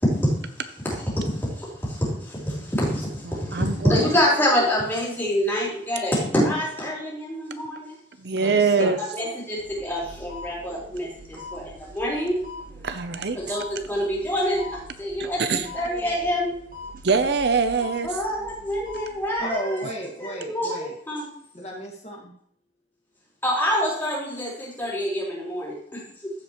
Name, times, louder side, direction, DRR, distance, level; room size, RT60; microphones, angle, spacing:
voice 1, 0.0-0.3 0.8-3.6 3.9-8.0 8.4-12.4 13.3-16.5 18.0-19.8 20.2-21.3 23.4-26.3, equal, 10° left, -6 dB, 3.2 m, -26 dB
voice 2, 3.3-4.0 8.2-9.0 12.8-13.4 15.2-15.7 17.0-18.1, right 5 dB, 65° right, 9 dB, 0.6 m, -23 dB
voice 3, 8.3-9.0 19.4-20.9 21.5-22.3, equal, 35° left, -2 dB, 1.8 m, -33 dB
sound 1, 9.6-19.4, left 2 dB, 45° right, 1.3 m, -43 dB
15.0 x 5.3 x 3.1 m, 0.67 s
head